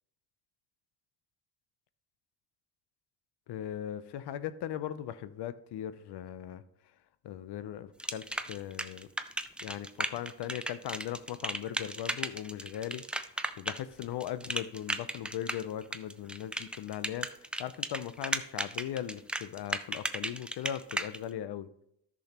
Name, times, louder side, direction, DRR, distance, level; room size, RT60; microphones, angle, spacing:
voice 1, 3.5-6.6 7.2-9.1 9.6-13.0 13.6-21.7, left 10 dB, 65° left, 14 dB, 0.7 m, -39 dB
sound 1, 8.0-21.2, right 1 dB, 5° right, 0.3 m, -35 dB
13.5 x 6.3 x 3.0 m, 0.76 s
cardioid pair, 100°, 43 cm